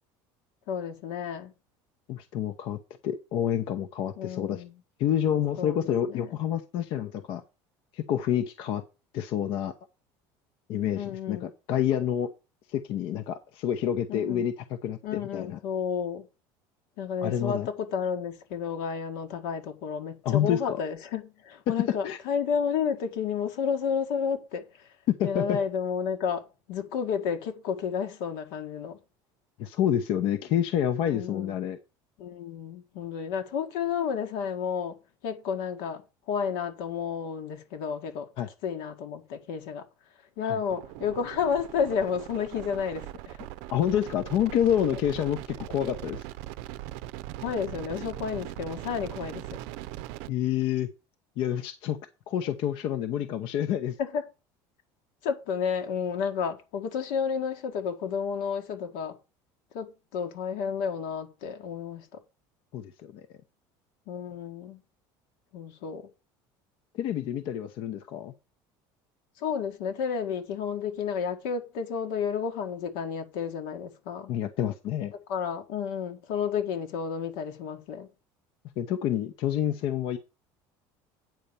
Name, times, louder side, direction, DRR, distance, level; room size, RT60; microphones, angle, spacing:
voice 1, 0.7-1.5 4.2-4.8 5.6-6.3 10.9-11.5 14.1-14.5 15.0-16.3 17.0-24.9 25.2-29.0 31.0-31.7 32.2-36.0 36.3-38.3 38.6-39.9 40.4-43.5 47.4-49.6 54.0-54.2 55.2-59.2 59.7-62.1 64.1-64.8 65.5-66.1 69.4-74.3 75.3-78.1, left 7 dB, 85° left, 1.8 m, -31 dB
voice 2, 2.1-4.6 5.0-7.4 7.9-8.8 9.1-9.7 10.7-12.3 12.7-15.6 17.2-17.7 20.2-20.8 22.0-22.2 25.2-25.6 29.6-31.8 38.4-38.5 40.4-40.6 43.7-46.2 50.3-50.9 51.4-52.0 52.3-54.0 62.7-63.3 67.0-68.3 74.3-75.1 78.8-80.2, left 10 dB, 60° left, 0.8 m, -28 dB
sound 1, 40.7-50.3, right 15 dB, 75° right, 0.5 m, -40 dB
9.1 x 4.3 x 6.8 m
cardioid pair, 140°, 10 cm